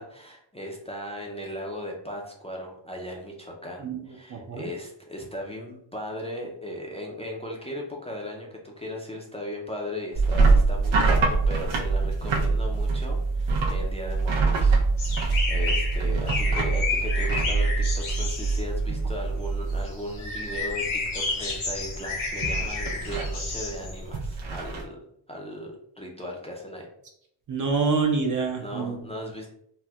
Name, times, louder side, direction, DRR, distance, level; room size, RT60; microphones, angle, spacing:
voice 1, 0.0-25.0 25.3-26.9 28.6-29.5, left 1 dB, 15° left, -2 dB, 0.4 m, -37 dB
voice 2, 4.3-4.7 16.0-16.2 27.5-29.0, right 4 dB, 45° right, 2 dB, 0.5 m, -26 dB
sound 1, 10.1-20.3 20.5-21.0 21.3-24.8, right 3 dB, 80° right, 0.8 m, -24 dB
sound 2, 15.0-24.2, left 3 dB, 80° left, 1.2 m, -31 dB
4.2 x 2.1 x 2.3 m, 0.70 s
wide cardioid pair, 130°, 47 cm